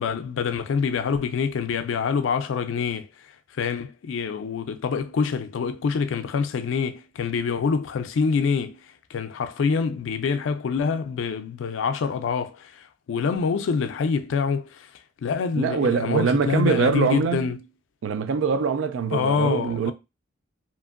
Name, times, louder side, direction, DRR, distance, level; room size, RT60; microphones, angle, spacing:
voice 1, 0.0-3.1 3.6-8.8 9.1-14.9 15.2-17.6 19.1-19.9, left 5 dB, 90° left, 0.4 m, -26 dB
voice 2, 15.6-17.5 18.0-19.9, right 6 dB, 85° right, 0.3 m, -23 dB
2.9 x 2.5 x 2.4 m
head